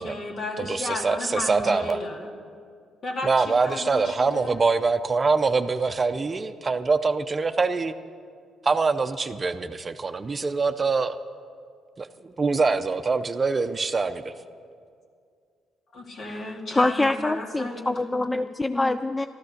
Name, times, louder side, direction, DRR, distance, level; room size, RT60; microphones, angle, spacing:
voice 1, 0.0-2.3 3.0-4.6 15.9-18.2, left 2 dB, 55° left, 1 dB, 2.3 m, -34 dB
voice 2, 0.6-2.0 3.2-7.9 8.6-11.2 12.0-14.3, right 4 dB, 30° right, 9 dB, 0.6 m, -24 dB
voice 3, 16.3-19.3, left 2 dB, 15° left, 10 dB, 0.3 m, -25 dB
13.0 x 12.5 x 6.5 m, 2.2 s
cardioid pair, 90°, 0 cm